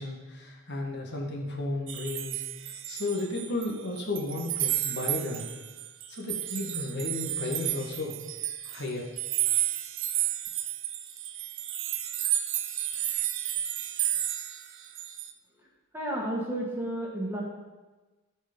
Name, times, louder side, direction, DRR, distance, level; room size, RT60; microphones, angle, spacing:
voice 1, 0.0-5.5 6.1-8.2 8.6-9.1, left 2 dB, 50° left, -1 dB, 1.5 m, -34 dB
sound 1, 1.9-3.7 4.0-15.3, right 13 dB, 55° right, 0.6 m, -32 dB
voice 2, 15.9-17.4, right 1 dB, 10° right, -3 dB, 1.7 m, -32 dB
14.0 x 4.8 x 5.3 m, 1.2 s
head